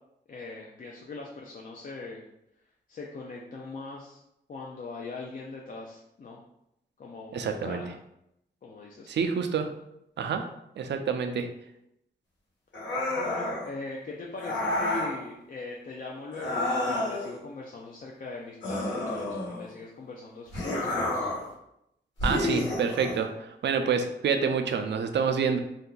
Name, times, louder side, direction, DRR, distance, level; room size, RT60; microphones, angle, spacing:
voice 1, 0.3-2.3 2.9-4.2 4.5-6.4 7.0-7.9 8.6-9.2 13.1-21.3, left 3 dB, 45° left, -2 dB, 0.5 m, -41 dB
voice 2, 7.3-7.8 9.1-9.7 10.2-10.4 10.8-11.5 22.2-25.6, right 6 dB, 70° right, 6 dB, 0.4 m, -27 dB
sound 1, 12.7-13.7 14.4-15.2 16.3-17.3 18.6-19.7 20.5-21.5 22.2-23.2, left 1 dB, 85° left, 1.3 m, -30 dB
2.6 x 2.3 x 3.7 m, 0.81 s
cardioid pair, 75°, 19 cm